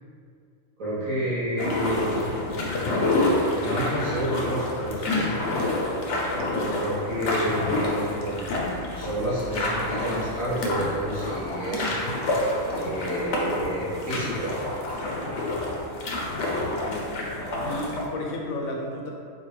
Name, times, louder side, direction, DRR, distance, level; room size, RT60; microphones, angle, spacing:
voice 1, 0.8-2.2 3.0-5.3 6.5-12.0 12.7-14.5, equal, 75° right, -11 dB, 1.3 m, -30 dB
sound 1, 1.6-18.1, left 2 dB, 65° left, 0.8 m, -28 dB
voice 2, 16.5-17.1 17.6-19.1, left 1 dB, 90° left, -1 dB, 1.0 m, -33 dB
4.3 x 2.4 x 3.1 m, 2.3 s
omnidirectional pair, 1.4 m